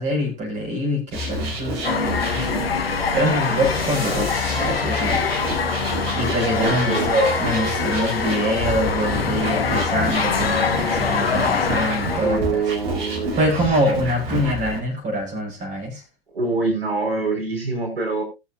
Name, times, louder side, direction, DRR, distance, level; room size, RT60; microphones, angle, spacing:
voice 1, 0.0-2.5 3.1-5.3 6.1-12.6 13.4-16.0, equal, 25° right, 0 dB, 6.6 m, -24 dB
sound 1, 1.1-14.8, right 1 dB, 55° right, 4.8 m, -29 dB
sound 2, 1.8-12.4, left 5 dB, 75° left, 1.8 m, -24 dB
voice 2, 6.6-7.1 12.2-13.8 16.3-18.2, right 3 dB, 75° right, 0 dB, 5.4 m, -25 dB
20.5 x 7.3 x 2.8 m, 0.25 s
figure-of-eight pair, 100°, 30 cm